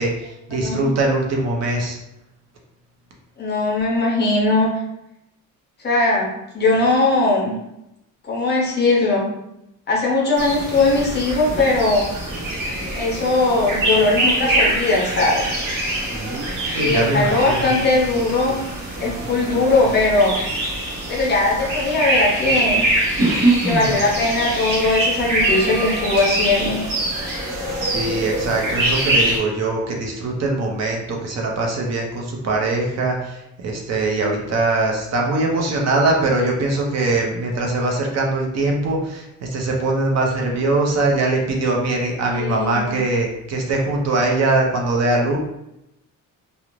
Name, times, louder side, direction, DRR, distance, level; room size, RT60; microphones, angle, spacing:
voice 1, 0.0-2.0 16.7-17.7 27.7-45.4, right 2 dB, 50° right, 0 dB, 0.5 m, -22 dB
voice 2, 0.6-0.9 3.4-4.7 5.8-7.6 8.2-9.2 9.9-12.1 12.9-15.5 16.8-18.6 19.0-20.4 21.1-22.9 23.6-26.8 42.2-42.9, left 2 dB, 30° left, -3 dB, 0.5 m, -19 dB
sound 1, 10.4-29.4, right 1 dB, 70° right, 0.9 m, -23 dB
2.4 x 2.0 x 3.0 m, 0.86 s
cardioid pair, 180°, 33 cm